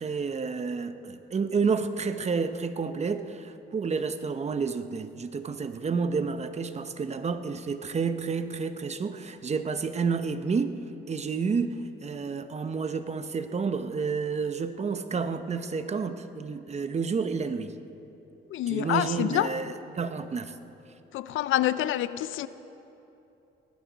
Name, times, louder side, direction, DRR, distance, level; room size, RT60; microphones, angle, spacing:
voice 1, 0.0-10.8 11.1-17.8 18.7-20.5, right 5 dB, 35° right, 10 dB, 0.8 m, -30 dB
voice 2, 18.5-19.5 21.1-22.5, left 13 dB, 80° left, 15 dB, 0.5 m, -27 dB
19.5 x 14.5 x 4.0 m, 3.0 s
cardioid pair, 90°, 20 cm